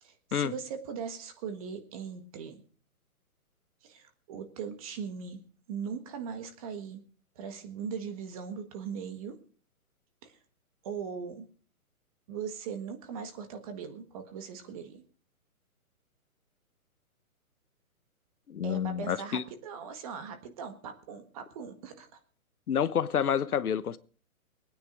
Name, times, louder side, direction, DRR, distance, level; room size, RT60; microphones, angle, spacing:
voice 1, 0.0-2.6 3.8-5.4 5.7-7.0 7.4-9.4 10.2-10.3 10.8-11.5 12.3-15.0 18.6-22.1, right 6 dB, 25° right, 1.6 m, -39 dB
voice 2, 18.5-19.4 22.7-24.0, left 8 dB, 85° left, 1.2 m, -28 dB
21.0 x 9.5 x 4.9 m
hypercardioid pair, 165°, 43 cm